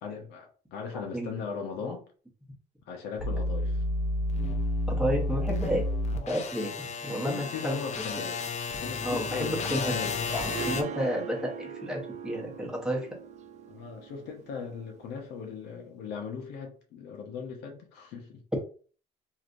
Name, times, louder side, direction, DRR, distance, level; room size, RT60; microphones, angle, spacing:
voice 1, 0.0-2.0 2.9-3.8 7.1-8.5 8.8-10.1 13.7-18.4, left 6 dB, 80° left, 0.9 m, -38 dB
voice 2, 0.9-1.3 4.9-5.8 6.3-8.2 9.0-9.9 10.3-13.1, equal, 5° right, 1.1 m, -31 dB
sound 1, 3.2-10.8, left 2 dB, 40° left, 0.5 m, -31 dB
Harp, 10.2-15.3, right 8 dB, 45° right, 0.4 m, -41 dB
3.2 x 2.8 x 2.5 m
cardioid pair, 110°, 17 cm